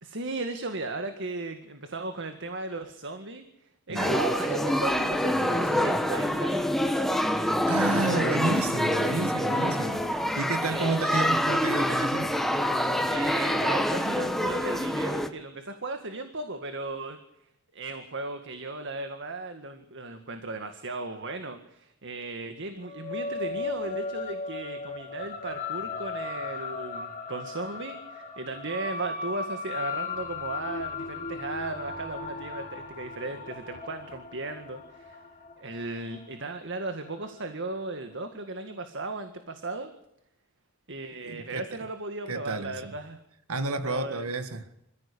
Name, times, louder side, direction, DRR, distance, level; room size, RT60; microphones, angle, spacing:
voice 1, 0.0-3.4 3.9-6.6 10.6-11.0 13.1-17.2 17.7-35.2 35.6-39.9 40.9-43.2 43.8-44.3, right 2 dB, 55° right, 7 dB, 1.9 m, -36 dB
sound 1, 4.0-15.3, equal, ahead, 1.4 m, -26 dB
voice 2, 7.3-12.3 41.2-41.6 42.3-42.9 43.5-44.7, right 3 dB, 90° right, 9 dB, 1.8 m, -31 dB
sound 2, 22.8-37.5, left 4 dB, 35° left, 3.5 m, -37 dB
26.5 x 15.0 x 8.5 m, 0.82 s
head